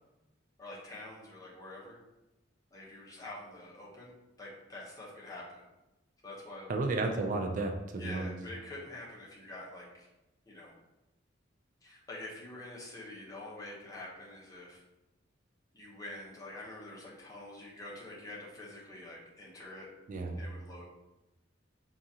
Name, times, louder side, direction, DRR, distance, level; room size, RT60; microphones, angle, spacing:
voice 1, 0.6-2.0 2.7-4.1 4.4-5.6 6.2-6.7 8.0-10.1 10.5-10.7 11.8-14.8 15.7-19.9 20.4-20.8, left 2 dB, 20° left, -5 dB, 0.8 m, -46 dB
voice 2, 6.7-8.4 20.1-20.4, right 3 dB, 40° right, 3 dB, 0.4 m, -32 dB
4.7 x 2.4 x 2.7 m, 1.0 s
head